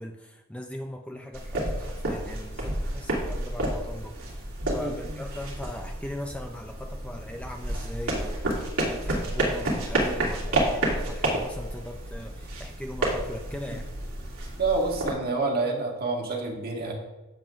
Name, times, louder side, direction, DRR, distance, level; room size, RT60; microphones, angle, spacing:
voice 1, 0.0-4.5 4.7-13.9, left 1 dB, 5° left, 3 dB, 0.4 m, -39 dB
sound 1, 1.3-15.1, right 1 dB, 80° right, 2.6 m, -30 dB
voice 2, 4.7-5.2 14.6-16.9, right 3 dB, 45° right, 0 dB, 1.7 m, -28 dB
14.5 x 7.7 x 2.5 m, 1.2 s
head